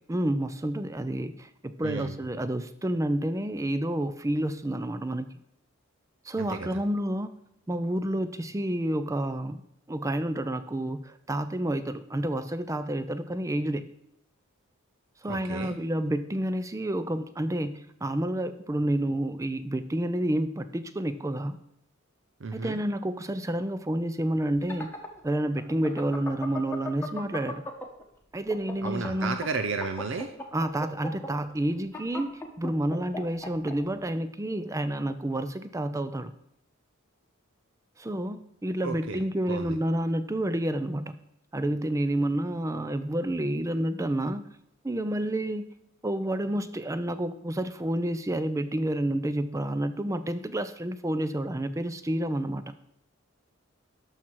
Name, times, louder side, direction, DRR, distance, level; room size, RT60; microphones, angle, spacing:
voice 1, 0.1-5.3 6.3-7.3 7.7-9.6 9.9-13.9 15.2-21.6 22.5-24.9 25.2-27.6 28.3-29.4 30.5-36.3 38.0-41.1 41.5-44.5 44.8-45.7 46.0-52.6, right 1 dB, 15° right, 12 dB, 0.4 m, -29 dB
voice 2, 1.8-2.2 6.4-6.8 15.3-15.8 22.4-22.8 28.8-30.3 38.8-39.2 39.5-39.8, right 4 dB, 60° right, 8 dB, 0.6 m, -33 dB
sound 1, 24.4-28.0 28.4-33.7, left 2 dB, 10° left, 1.1 m, -37 dB
12.0 x 5.9 x 4.6 m, 0.78 s
head